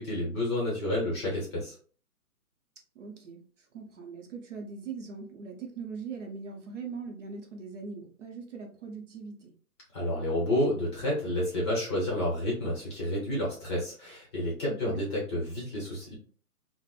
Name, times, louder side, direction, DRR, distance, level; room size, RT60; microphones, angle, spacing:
voice 1, 0.0-1.7 9.9-16.1, left 1 dB, 20° left, -4 dB, 0.7 m, -30 dB
voice 2, 3.0-3.4 3.7-9.5 14.7-15.0, right 5 dB, 50° right, 2 dB, 0.7 m, -41 dB
3.2 x 2.0 x 2.2 m, 0.41 s
figure-of-eight pair, 135°, 45 cm